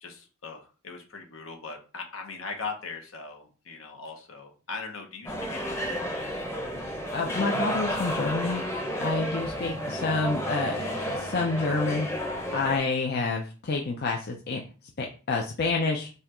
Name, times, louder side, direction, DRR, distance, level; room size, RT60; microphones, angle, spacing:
voice 1, 0.0-6.4, left 4 dB, 75° left, 2 dB, 1.0 m, -40 dB
sound 1, 5.2-12.8, equal, 15° left, 0.8 m, -31 dB
voice 2, 7.1-8.6 9.0-12.1 12.5-14.6 15.0-16.1, left 3 dB, 55° left, 1 dB, 0.5 m, -28 dB
5.5 x 2.4 x 2.9 m, 0.36 s
head